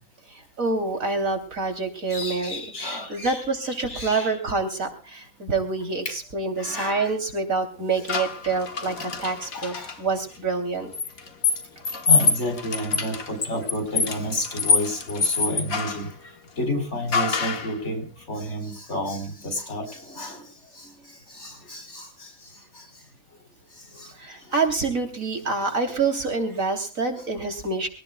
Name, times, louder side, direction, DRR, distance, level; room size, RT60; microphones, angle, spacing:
voice 1, 0.3-10.9 24.2-27.9, right 4 dB, 70° right, 5 dB, 3.8 m, -27 dB
voice 2, 2.1-3.4 3.9-4.3 6.0-6.1 6.6-7.1 8.8-8.9 9.5-9.9 12.1-16.1 16.6-20.4 21.4-22.0 24.5-24.6, left 1 dB, 55° left, 6 dB, 4.8 m, -30 dB
sound 1, 8.1-10.0 10.9-16.1 17.1-17.7, left 4 dB, 75° left, 2.2 m, -25 dB
23.5 x 18.0 x 2.3 m, 0.36 s
omnidirectional pair, 1.4 m